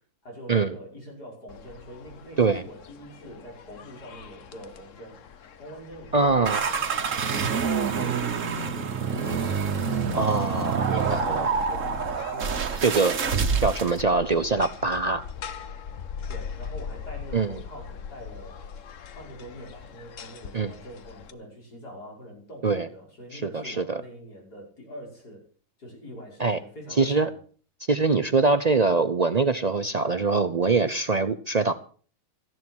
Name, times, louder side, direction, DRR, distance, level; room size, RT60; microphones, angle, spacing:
voice 1, 0.2-7.7 8.0-9.6 9.9-10.4 10.8-13.0 16.3-18.7 19.1-25.4 25.8-27.4, equal, 75° left, -1 dB, 6.1 m, -44 dB
sound 1, 1.5-21.3, left 7 dB, 55° left, 1.2 m, -42 dB
voice 2, 6.1-6.6 10.1-11.5 12.8-13.2 13.6-15.2 17.3-17.6 20.5-20.7 22.6-22.9 23.3-24.0 26.4-26.6 27.0-27.3 27.9-31.7, right 4 dB, 70° right, 11 dB, 0.3 m, -23 dB
sound 2, 6.4-14.0, right 5 dB, 55° right, 1.5 m, -27 dB
15.0 x 11.0 x 6.2 m, 0.44 s
omnidirectional pair, 1.7 m